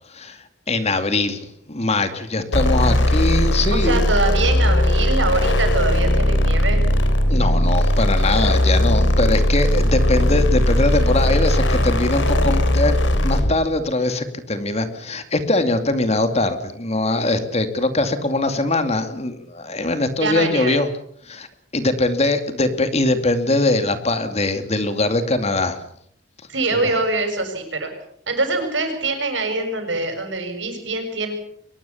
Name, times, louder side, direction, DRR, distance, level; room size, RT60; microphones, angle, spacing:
voice 1, 0.1-4.1 7.3-20.9 21.2-21.5 21.7-25.8 26.7-26.9, left 2 dB, 35° left, 9 dB, 2.5 m, -22 dB
sound 1, 2.5-13.6, left 1 dB, 90° left, 3.6 m, -18 dB
voice 2, 3.7-6.8 20.2-20.8 26.5-27.9 28.3-31.3, right 2 dB, 80° right, 5 dB, 7.2 m, -24 dB
23.5 x 21.0 x 7.2 m, 0.69 s
head